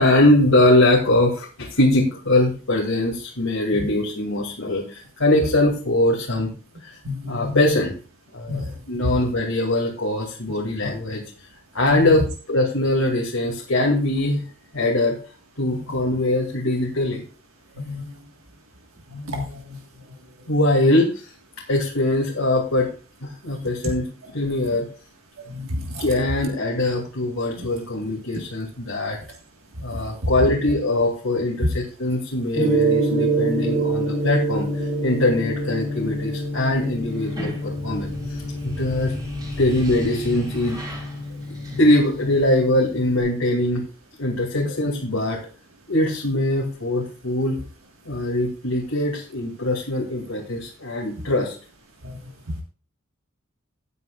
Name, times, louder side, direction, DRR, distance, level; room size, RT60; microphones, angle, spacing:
voice 1, 0.0-6.5 6.8-7.0 7.3-8.0 8.3-11.2 11.7-14.4 14.7-15.2 15.6-17.2 20.5-21.3 21.7-22.9 23.2-24.9 26.0-29.2 29.8-39.1 39.6-40.8 41.8-43.9 44.2-45.4 45.9-47.6 48.1-51.5, left 1 dB, 80° left, -2 dB, 2.3 m, -22 dB
voice 2, 7.0-7.6 8.5-8.7 10.8-10.9 11.8-12.2 17.9-18.1 19.1-19.8 25.5-26.0 27.6-27.7 30.2-30.3 41.7-41.8 44.6-44.7 52.0-52.2, left 2 dB, 80° right, 2 dB, 1.6 m, -30 dB
Gong, 32.6-43.2, right 2 dB, 40° right, 5.4 m, -27 dB
sound 1, 37.1-42.4, equal, 20° right, 4.0 m, -36 dB
16.0 x 9.4 x 2.4 m, 0.36 s
head